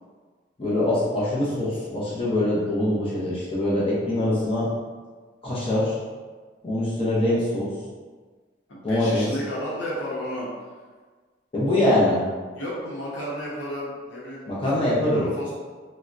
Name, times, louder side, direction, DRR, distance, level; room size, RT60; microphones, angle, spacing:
voice 1, 0.6-4.7 5.4-6.0 6.6-7.7 8.8-9.3 11.5-12.2 14.5-15.2, left 1 dB, 30° left, -8 dB, 0.7 m, -23 dB
voice 2, 8.7-10.5 12.5-15.5, equal, 90° left, -6 dB, 0.9 m, -33 dB
3.4 x 2.2 x 2.6 m, 1.4 s
head